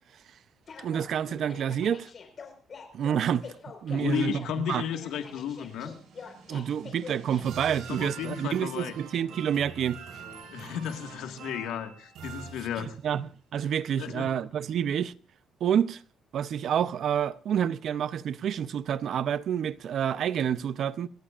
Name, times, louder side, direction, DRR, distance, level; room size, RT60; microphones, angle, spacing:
sound 1, 0.7-7.4, left 5 dB, 40° left, 4.5 m, -45 dB
voice 1, 0.8-2.1 2.9-4.8 6.5-10.0 13.0-15.1 15.6-16.0 16.3-21.1, right 9 dB, 60° right, 0.7 m, -28 dB
voice 2, 3.9-5.9 7.7-8.9 10.5-13.0 14.0-14.3, left 9 dB, 85° left, 1.7 m, -34 dB
sound 2, 4.5-13.2, right 6 dB, 80° right, 6.5 m, -46 dB
28.5 x 14.0 x 2.5 m
cardioid pair, 110°, 0 cm